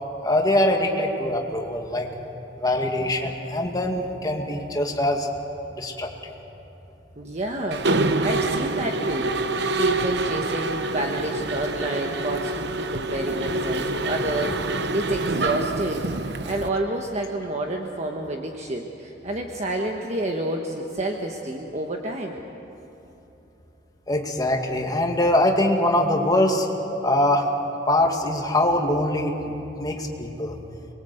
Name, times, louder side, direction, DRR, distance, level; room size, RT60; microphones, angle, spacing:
voice 1, 0.2-2.1 2.6-5.3 5.8-6.1 24.1-26.7 27.0-27.5 27.9-30.6, left 1 dB, 20° left, 1 dB, 2.2 m, -23 dB
voice 2, 7.2-7.9 8.2-9.4 9.8-22.4, right 1 dB, 40° right, 1 dB, 1.4 m, -29 dB
Mechanisms, 7.7-16.7, right 2 dB, 65° right, 1.0 m, -26 dB
26.5 x 22.0 x 8.0 m, 3.0 s
head